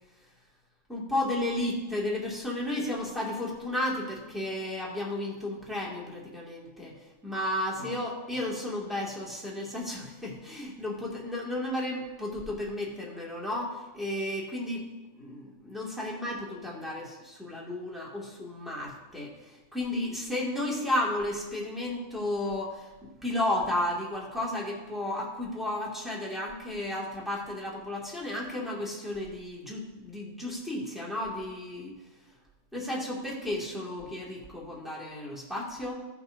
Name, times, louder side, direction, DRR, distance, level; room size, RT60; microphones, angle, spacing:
voice 1, 0.9-6.9 7.2-14.8 15.1-22.9 23.2-31.9 32.7-35.9, left 1 dB, ahead, -5 dB, 2.1 m, -33 dB
17.0 x 6.0 x 2.7 m, 1.2 s
omnidirectional pair, 1.5 m